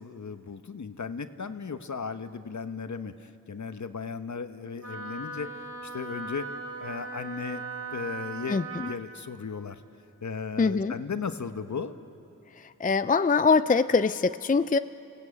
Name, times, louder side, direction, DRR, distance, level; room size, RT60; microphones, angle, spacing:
voice 1, 0.0-5.5 5.8-6.5 6.8-7.7 7.9-9.8 10.2-11.9, left 5 dB, 60° left, 10 dB, 1.1 m, -36 dB
Wind instrument woodwind instrument, 4.8-9.0, right 3 dB, 40° right, 2.2 m, -38 dB
voice 2, 10.6-10.9 12.8-14.8, left 4 dB, 25° left, 12 dB, 0.5 m, -23 dB
28.5 x 17.0 x 8.6 m, 2.8 s
cardioid pair, 50°, 33 cm